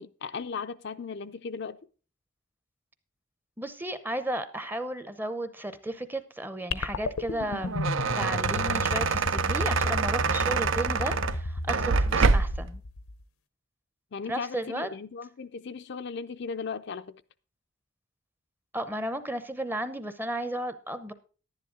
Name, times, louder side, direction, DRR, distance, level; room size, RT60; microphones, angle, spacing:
voice 1, 0.0-1.8 14.1-17.2, left 5 dB, 55° left, 0.5 m, -37 dB
voice 2, 3.6-7.9 8.2-12.8 14.3-14.9 18.7-21.1, right 1 dB, 10° right, 0.7 m, -34 dB
sound 1, 6.7-13.2, left 2 dB, 80° left, 0.8 m, -33 dB
sound 2, 7.5-12.7, right 4 dB, 65° right, 0.6 m, -26 dB
11.0 x 10.5 x 3.7 m
head